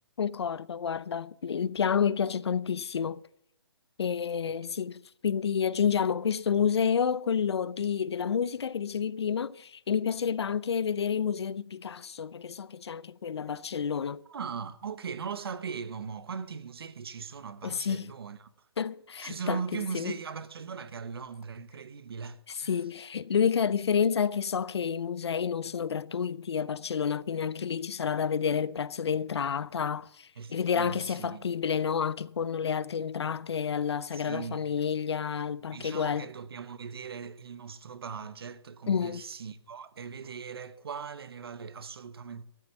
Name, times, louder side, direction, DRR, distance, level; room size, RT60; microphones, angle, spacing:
voice 1, 0.2-3.2 4.0-14.2 17.6-18.1 18.8-19.6 19.9-20.1 22.6-36.3 38.9-39.2, left 7 dB, 85° left, 0.6 m, -29 dB
voice 2, 14.3-18.7 19.2-22.8 30.4-31.4 34.1-34.6 35.7-42.4, right 6 dB, 65° right, 1.0 m, -39 dB
13.0 x 7.6 x 7.1 m
hypercardioid pair, 165°, 14 cm